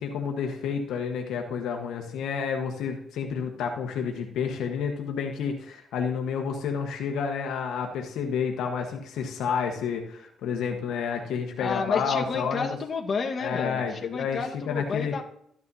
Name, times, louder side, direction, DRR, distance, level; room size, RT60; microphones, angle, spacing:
voice 1, 0.0-12.7 13.4-14.4 14.7-15.1, left 6 dB, 80° left, 3 dB, 1.2 m, -30 dB
voice 2, 11.6-15.2, left 5 dB, 45° left, 2 dB, 1.4 m, -30 dB
13.5 x 11.0 x 2.7 m, 0.70 s
cardioid pair, 90°, 0 cm